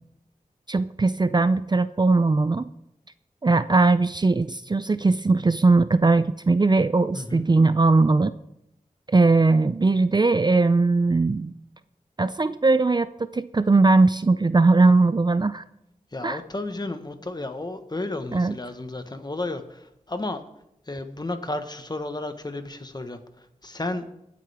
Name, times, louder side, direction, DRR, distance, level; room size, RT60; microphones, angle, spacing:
voice 1, 0.7-2.7 3.4-8.3 9.1-11.5 12.2-15.6 16.2-16.4 18.3-18.5, right 3 dB, 30° right, 13 dB, 0.4 m, -20 dB
voice 2, 7.1-7.5 16.1-20.4 20.9-24.0, left 2 dB, 30° left, 8 dB, 1.3 m, -33 dB
23.0 x 8.4 x 3.5 m, 0.82 s
wide cardioid pair, 75°, 14 cm